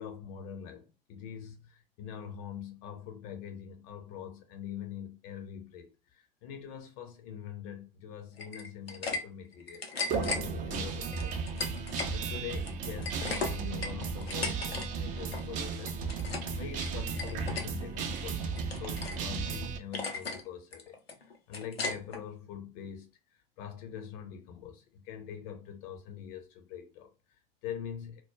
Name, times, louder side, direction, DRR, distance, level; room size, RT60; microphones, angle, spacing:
voice 1, 0.0-28.2, left 8 dB, 40° left, 0.5 m, -44 dB
sound 1, 8.4-9.2 9.5-10.4 11.1-12.1 12.5-14.9 15.1-15.5 15.8-16.5 16.8-17.7 18.1-19.2 19.5-19.6 19.9-20.4 20.7-22.2, left 3 dB, 90° left, 0.5 m, -36 dB
Guitar, 10.1-19.8, right 5 dB, 25° right, 0.4 m, -35 dB
2.2 x 2.1 x 3.0 m
figure-of-eight pair, 80°, 30 cm